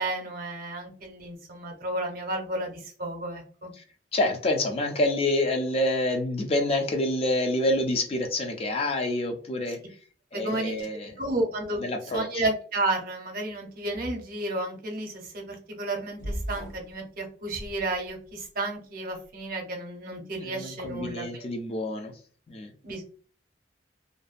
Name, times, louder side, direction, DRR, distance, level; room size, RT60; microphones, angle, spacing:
voice 1, 0.0-3.7 10.3-11.8 12.1-21.5 22.8-23.0, right 2 dB, 55° right, 2 dB, 0.7 m, -32 dB
voice 2, 4.1-9.8 10.3-11.1 11.8-12.4 20.4-22.1 22.5-22.7, left 1 dB, 35° left, 4 dB, 0.4 m, -27 dB
sound 1, 16.2-16.9 17.5-18.4, equal, 65° left, 0.8 m, -36 dB
2.5 x 2.2 x 2.4 m, 0.42 s
head